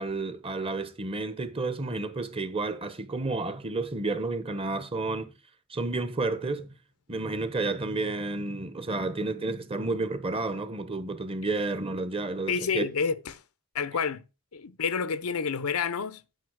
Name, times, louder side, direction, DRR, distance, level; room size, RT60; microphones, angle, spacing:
voice 1, 0.0-5.3 5.7-6.7 7.1-12.8, right 3 dB, 25° right, 1.0 m, -31 dB
voice 2, 12.5-13.2 13.7-14.2 14.5-16.2, left 6 dB, 90° left, 0.7 m, -28 dB
9.2 x 5.3 x 6.2 m
head